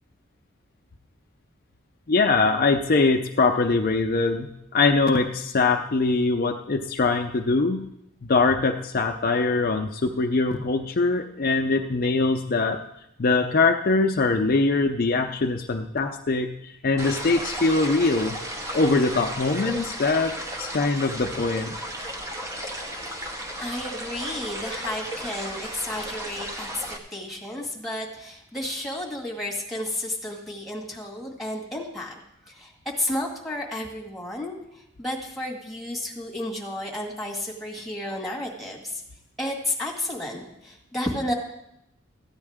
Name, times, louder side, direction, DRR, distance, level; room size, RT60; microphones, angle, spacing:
voice 1, 2.1-7.9 8.2-12.8 13.2-18.4 18.7-21.8, left 3 dB, 50° left, 4 dB, 0.6 m, -22 dB
sound 1, 17.0-27.0, equal, 15° right, 1.1 m, -34 dB
voice 2, 23.1-26.8 27.1-32.1 32.5-39.0 39.4-41.3, left 1 dB, ahead, -2 dB, 1.9 m, -32 dB
14.5 x 9.6 x 3.6 m, 0.80 s
head